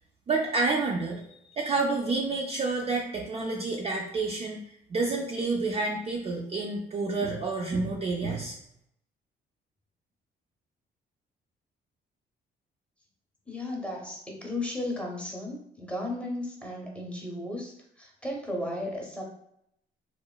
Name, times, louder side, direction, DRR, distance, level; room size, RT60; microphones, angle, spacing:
voice 1, 0.3-1.2 1.5-8.6, right 3 dB, 30° right, -1 dB, 0.4 m, -29 dB
voice 2, 13.5-19.2, left 1 dB, 5° left, -1 dB, 0.7 m, -35 dB
3.0 x 2.0 x 2.3 m, 0.75 s
cardioid pair, 90°, 20 cm